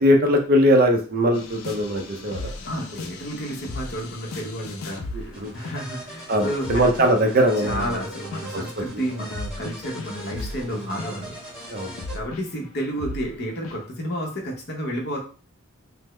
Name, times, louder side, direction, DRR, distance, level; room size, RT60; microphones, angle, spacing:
voice 1, 0.0-2.5 5.1-5.5 6.3-8.0 8.5-8.8 10.7-10.9 11.7-11.9, equal, 40° right, 3 dB, 0.5 m, -21 dB
sound 1, 1.3-5.3 5.6-6.1 6.5-8.0 8.3-8.5 9.3-13.3 13.6-13.8, left 2 dB, 75° left, 0.5 m, -36 dB
voice 2, 2.7-6.8 7.6-11.4 12.1-15.2, equal, 50° left, -1 dB, 0.8 m, -31 dB
sound 2, 5.3-12.2, equal, 5° right, 1.0 m, -39 dB
3.4 x 2.0 x 3.1 m, 0.38 s
head